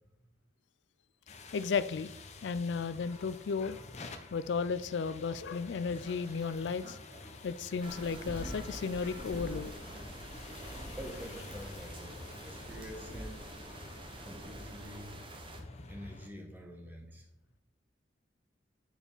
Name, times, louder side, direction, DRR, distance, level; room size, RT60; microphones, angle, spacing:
sound 1, 1.3-16.3, left 3 dB, 35° left, 0.8 m, -49 dB
voice 1, 1.5-2.1 2.4-3.8 4.3-7.0 7.4-9.7, left 5 dB, 70° left, 0.4 m, -34 dB
sound 2, 5.0-6.5 6.8-11.6, right 1 dB, 50° right, 2.1 m, -56 dB
sound 3, 7.8-15.6, right 1 dB, 30° right, 1.0 m, -46 dB
voice 2, 11.0-13.5 14.2-15.2 15.9-17.3, equal, 10° right, 1.2 m, -47 dB
8.7 x 4.8 x 5.4 m
head